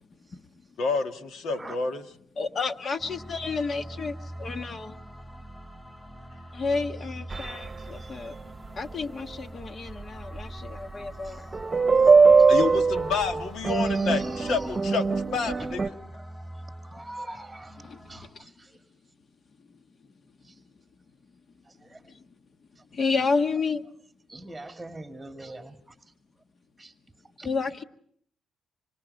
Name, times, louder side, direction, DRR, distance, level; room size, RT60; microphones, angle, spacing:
voice 1, 0.8-2.0 12.5-15.8, left 5 dB, 75° left, 7 dB, 1.8 m, -29 dB
voice 2, 2.4-4.9 6.5-8.3 8.8-11.5 17.9-18.0 22.9-23.8 27.4-27.8, left 4 dB, 45° left, 8 dB, 1.5 m, -30 dB
sound 1, 3.0-18.3, right 1 dB, 15° left, 5.9 m, -44 dB
voice 3, 6.9-8.4 11.2-12.6 13.7-14.8 15.6-15.7 16.1-18.8 21.6-22.0 22.8-22.9 24.3-26.1 26.8-26.9 27.4-27.5, right 2 dB, 10° right, 5 dB, 1.8 m, -45 dB
sound 2, 7.3-8.0 10.0-10.1 11.5-15.9, right 4 dB, 25° right, 1.1 m, -21 dB
26.0 x 26.0 x 5.4 m, 0.63 s
cardioid pair, 90°, 0 cm